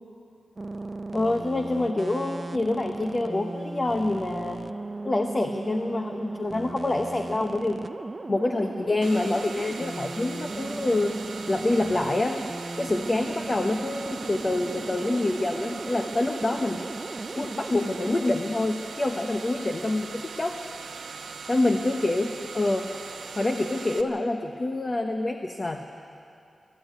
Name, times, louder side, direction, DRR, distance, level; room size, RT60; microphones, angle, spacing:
sound 1, 0.6-18.3, right 2 dB, 25° right, 0.5 m, -37 dB
voice 1, 1.1-4.6 5.0-7.8 8.3-11.1 11.5-12.4 12.8-16.8 17.3-20.6 21.5-22.9 23.4-25.8, left 2 dB, 25° left, 4 dB, 0.9 m, -26 dB
sound 2, 9.0-24.0, right 5 dB, 85° right, 1.1 m, -40 dB
22.0 x 14.0 x 9.4 m, 2.5 s
wide cardioid pair, 155°, 0 cm